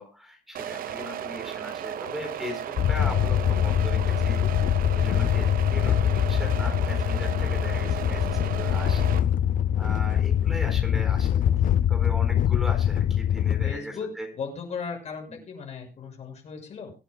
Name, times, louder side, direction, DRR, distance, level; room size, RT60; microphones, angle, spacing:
voice 1, 0.0-4.4 4.9-9.2 9.8-14.3 15.3-15.4, left 1 dB, ahead, 4 dB, 4.4 m, -38 dB
sound 1, 0.5-9.2, right 10 dB, 75° right, 0.8 m, -35 dB
sound 2, 2.8-13.7, left 10 dB, 65° left, 0.6 m, -23 dB
voice 2, 13.6-16.9, left 5 dB, 50° left, 2 dB, 6.5 m, -37 dB
25.0 x 9.7 x 2.3 m, 0.32 s
cardioid pair, 160°, 15 cm